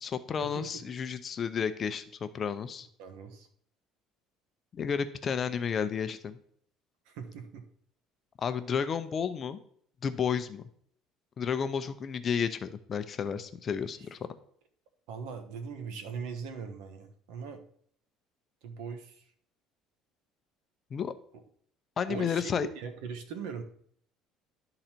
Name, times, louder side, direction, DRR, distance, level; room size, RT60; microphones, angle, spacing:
voice 1, 0.0-2.9 4.7-6.4 8.4-9.6 10.0-10.6 11.4-14.2 20.9-21.1 22.0-22.7, left 7 dB, 35° left, 10 dB, 0.6 m, -32 dB
voice 2, 3.0-3.5 7.1-7.6 15.1-17.6 18.6-19.3 22.1-23.6, right 6 dB, 85° right, 7 dB, 1.2 m, -40 dB
11.5 x 3.9 x 4.4 m, 0.62 s
cardioid pair, 130°, 0 cm